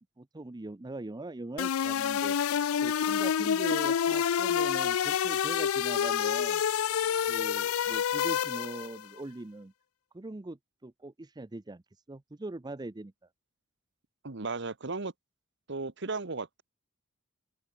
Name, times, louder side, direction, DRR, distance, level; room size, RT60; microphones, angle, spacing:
voice 1, 0.2-2.4 2.8-6.6 7.2-9.7 10.1-11.8 12.1-13.1, right 2 dB, 20° right, 0.5 m, -41 dB
sound 1, 1.6-9.0, left 8 dB, 85° left, 0.4 m, -28 dB
voice 2, 14.2-15.1 15.7-16.6, right 3 dB, 60° right, 1.3 m, -35 dB
head